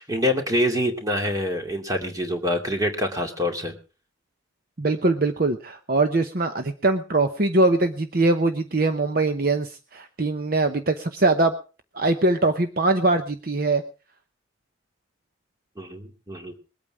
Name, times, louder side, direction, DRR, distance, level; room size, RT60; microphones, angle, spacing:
voice 1, 0.0-3.8 15.8-16.5, left 1 dB, 20° right, 3 dB, 2.4 m, -26 dB
voice 2, 4.8-11.5 11.9-13.8, right 2 dB, 45° right, 8 dB, 0.8 m, -22 dB
21.0 x 8.8 x 4.8 m, 0.36 s
head